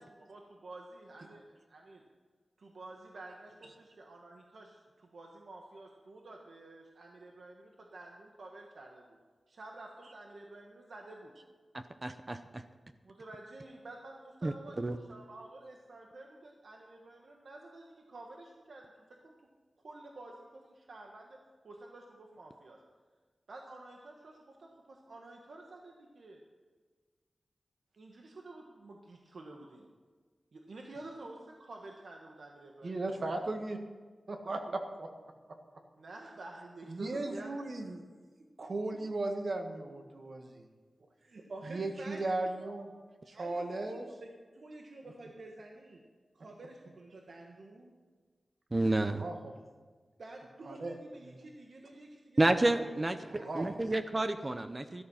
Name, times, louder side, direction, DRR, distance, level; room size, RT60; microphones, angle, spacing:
voice 1, 0.0-2.0 2.6-9.2 9.5-11.3 13.0-19.3 19.8-21.4 21.6-22.8 23.5-26.4 28.0-29.9 30.5-33.4 36.0-37.9 38.9-39.0 41.2-42.2 42.6-42.8 43.3-44.3 44.6-46.0 46.3-47.9 50.2-54.0, right 2 dB, 75° right, 1 dB, 1.4 m, -50 dB
voice 2, 11.7-12.6 14.4-14.9 48.7-49.2 52.4-53.2 53.5-55.0, right 2 dB, 30° right, 9 dB, 0.7 m, -30 dB
voice 3, 32.8-33.8 34.3-35.1 35.5-35.6 36.9-38.0 38.6-40.7 41.7-42.9 43.3-44.1 49.2-49.5 50.7-51.0 51.2-51.4 53.3-53.7, right 2 dB, 60° right, 4 dB, 1.6 m, -36 dB
13.0 x 13.0 x 5.7 m, 1.4 s
wide cardioid pair, 115°, 0 cm